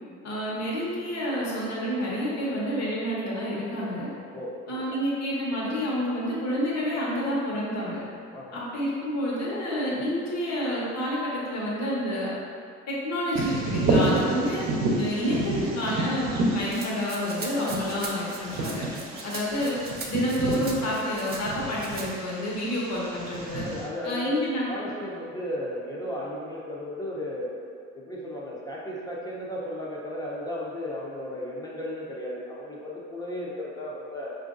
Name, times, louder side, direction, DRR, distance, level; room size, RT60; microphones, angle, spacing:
voice 1, 0.2-4.1 4.7-8.0 8.5-12.3 12.9-14.6 15.0-18.8 19.2-19.8 20.1-23.6 24.0-24.7, equal, 55° left, -6 dB, 1.1 m, -29 dB
voice 2, 4.3-5.0 8.3-8.6 14.4-14.6 19.2-19.3 23.6-24.4 24.7-27.5 27.9-34.3, left 1 dB, 10° left, -5 dB, 0.6 m, -35 dB
Bird vocalization bird call bird song, 13.3-23.9, right 2 dB, 65° right, 0.7 m, -30 dB
Rattle (instrument), 16.7-21.4 21.8-22.1, right 3 dB, 35° right, 0.5 m, -40 dB
4.4 x 2.5 x 2.5 m, 2.3 s
cardioid pair, 90°, 30 cm